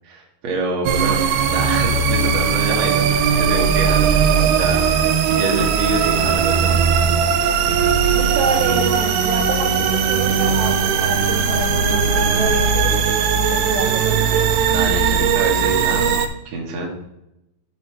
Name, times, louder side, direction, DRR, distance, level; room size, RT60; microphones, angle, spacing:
voice 1, 0.0-1.2 1.5-6.8 12.1-12.5 14.7-16.1 16.5-16.9, right 2 dB, 55° right, 0 dB, 2.2 m, -26 dB
sound 1, 0.9-16.3, right 6 dB, 90° right, 2.8 m, -18 dB
voice 2, 8.1-13.0 13.5-14.5, right 4 dB, 70° right, 1 dB, 2.2 m, -27 dB
7.0 x 5.5 x 4.8 m, 0.86 s
omnidirectional pair, 4.9 m